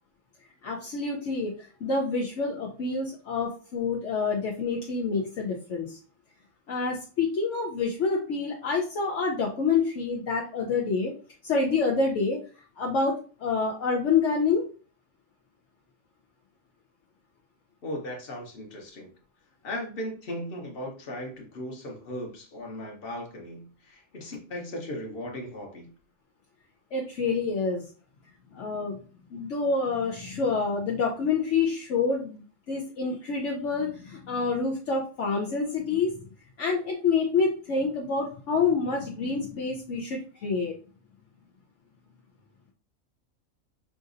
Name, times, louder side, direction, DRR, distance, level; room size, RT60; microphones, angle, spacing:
voice 1, 0.6-1.5 1.8-6.0 6.7-11.1 11.4-12.4 12.8-14.6 26.9-27.8 28.5-29.0 29.3-36.2 36.6-40.7, left 4 dB, 65° left, -2 dB, 1.0 m, -27 dB
voice 2, 17.8-19.1 19.6-25.9, left 1 dB, 45° left, 0 dB, 1.2 m, -37 dB
5.9 x 2.6 x 2.5 m, 0.38 s
omnidirectional pair, 1.4 m